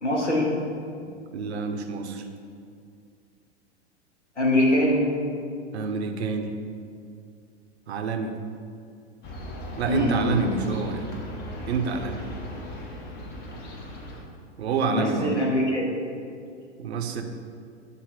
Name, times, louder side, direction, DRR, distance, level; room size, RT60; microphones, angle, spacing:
voice 1, 0.0-0.5 4.4-5.1 9.9-10.6 13.5-13.6 14.8-15.9, left 1 dB, 90° left, -2 dB, 1.3 m, -23 dB
voice 2, 1.3-2.3 5.7-6.5 7.9-8.3 9.8-11.1 11.7-12.2 14.6-15.3 16.8-17.2, right 5 dB, 70° right, 5 dB, 0.7 m, -28 dB
sound 1, 9.2-14.2, equal, 30° left, 0.8 m, -37 dB
8.3 x 2.8 x 4.7 m, 2.3 s
figure-of-eight pair, 95°, 34 cm